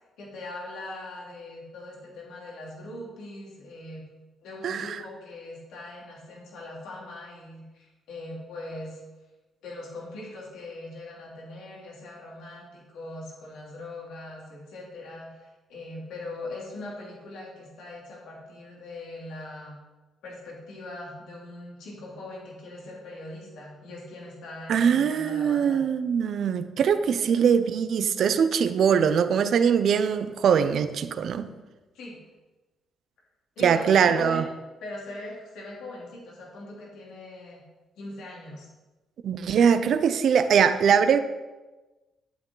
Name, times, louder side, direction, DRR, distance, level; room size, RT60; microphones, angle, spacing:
voice 1, 0.2-4.0 4.4-9.0 9.6-19.8 20.2-25.8 27.2-27.3 31.9-32.2 33.5-34.4 34.8-37.6 38.0-38.7, left 2 dB, 85° left, -3 dB, 3.2 m, -41 dB
voice 2, 4.6-5.0 24.7-31.5 33.6-34.4 39.2-41.2, right 7 dB, 65° right, 11 dB, 0.7 m, -22 dB
10.5 x 9.2 x 4.0 m, 1.2 s
cardioid pair, 90°, 0 cm